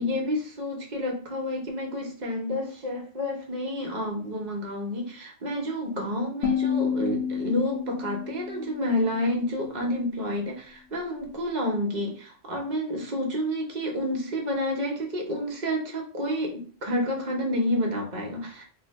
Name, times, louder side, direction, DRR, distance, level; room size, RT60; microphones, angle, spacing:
voice 1, 0.0-18.6, left 1 dB, 45° right, 0 dB, 0.9 m, -29 dB
sound 1, 6.4-9.4, left 7 dB, 90° left, 1.0 m, -30 dB
2.8 x 2.2 x 3.9 m, 0.42 s
omnidirectional pair, 1.1 m